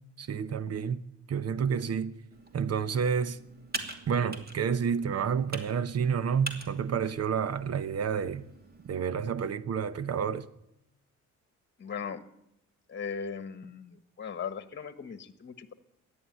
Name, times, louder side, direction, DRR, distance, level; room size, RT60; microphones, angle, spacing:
voice 1, 0.2-1.0 1.3-2.2 2.5-3.4 4.1-8.5 8.9-10.5, right 7 dB, 55° right, 1.0 m, -29 dB
Computer keyboard, 2.3-9.1, right 3 dB, 30° right, 2.7 m, -44 dB
voice 2, 11.8-12.2 12.9-15.7, left 6 dB, 40° left, 1.3 m, -38 dB
14.0 x 10.5 x 9.2 m
cardioid pair, 90°, 30 cm